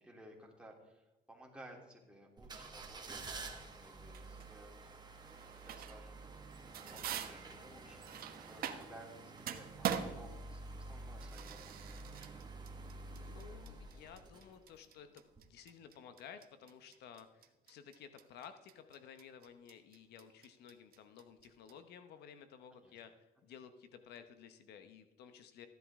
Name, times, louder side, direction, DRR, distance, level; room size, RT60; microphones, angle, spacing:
voice 1, 0.0-4.7 5.5-6.4 6.8-11.9 22.8-22.9, right 1 dB, 5° right, -1 dB, 3.1 m, -57 dB
sound 1, 2.4-14.9 15.3-15.4, right 3 dB, 25° right, 1.8 m, -50 dB
sound 2, 4.1-4.5 5.2-6.1 6.4-9.1 9.4-21.7, right 9 dB, 60° right, 1.2 m, -44 dB
voice 2, 13.1-15.1 15.4-25.7, left 8 dB, 75° left, 9 dB, 1.0 m, -55 dB
15.0 x 10.5 x 3.7 m, 0.99 s
cardioid pair, 110°, 17 cm